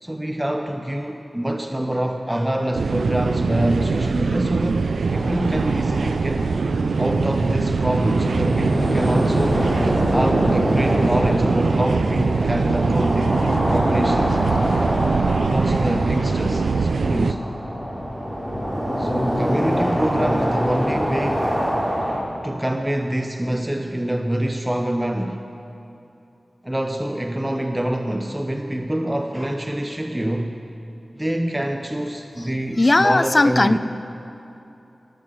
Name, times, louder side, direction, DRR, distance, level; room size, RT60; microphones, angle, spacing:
voice 1, 0.0-6.5 7.0-9.7 10.1-14.4 15.5-17.4 19.0-21.5 22.4-25.4 26.6-30.6 31.2-33.8, right 1 dB, 15° right, 5 dB, 0.8 m, -25 dB
sound 1, 2.7-17.3, right 4 dB, 90° right, 0.4 m, -22 dB
sound 2, 5.0-22.2, equal, 35° right, 4.3 m, -25 dB
voice 2, 32.8-33.8, left 2 dB, 40° left, 14 dB, 0.5 m, -17 dB
18.5 x 8.5 x 7.6 m, 2.9 s
cardioid pair, 40°, 0 cm